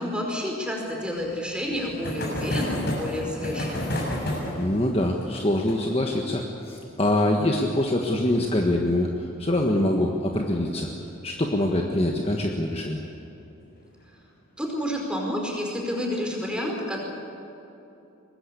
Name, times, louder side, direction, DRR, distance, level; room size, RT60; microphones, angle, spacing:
voice 1, 0.0-3.9 14.6-17.0, equal, 5° right, 0 dB, 4.9 m, -29 dB
sound 1, 1.0-10.2 10.5-10.6 10.8-10.9 11.2-11.3 12.7-13.0 13.6-14.0, left 1 dB, 50° left, 6.9 m, -33 dB
voice 2, 4.5-10.9 11.2-13.0, left 1 dB, 25° left, 1 dB, 1.5 m, -24 dB
24.0 x 20.0 x 8.4 m, 2.9 s
head